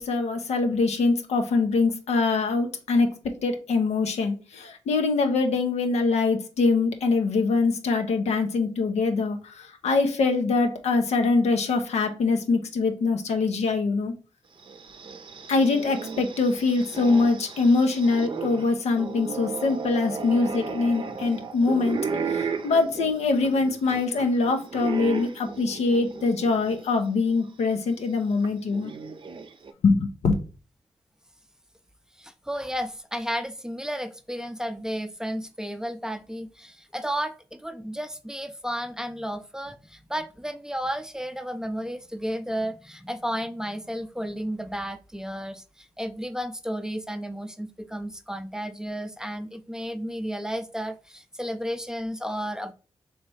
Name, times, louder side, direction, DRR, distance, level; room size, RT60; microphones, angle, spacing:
voice 1, 0.0-14.1 15.5-22.0 22.3-28.9 29.8-30.3, left 3 dB, 85° left, 5 dB, 0.7 m, -23 dB
sound 1, 14.6-26.8 27.3-27.4 28.4-29.7, right 5 dB, 50° right, 0.6 m, -35 dB
voice 2, 32.2-52.7, equal, 5° right, 9 dB, 0.5 m, -33 dB
3.2 x 3.1 x 4.6 m, 0.35 s
cardioid pair, 55°, 11 cm